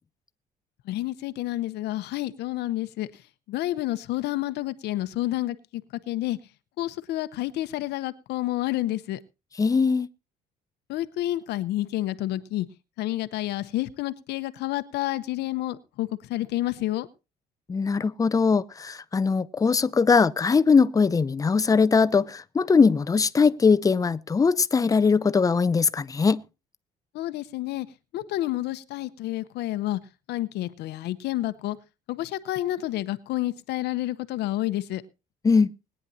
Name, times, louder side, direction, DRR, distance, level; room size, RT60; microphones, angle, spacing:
voice 1, 0.9-3.2 3.5-6.4 6.8-9.2 10.9-12.7 13.0-17.1 27.1-27.9 28.1-30.0 30.3-31.8 32.1-35.0, left 15 dB, 80° left, 0.8 m, -29 dB
voice 2, 9.6-10.1 17.7-26.4 35.4-35.7, left 5 dB, 20° left, 0.5 m, -21 dB
20.5 x 9.8 x 2.7 m
cardioid pair, 110°, 17 cm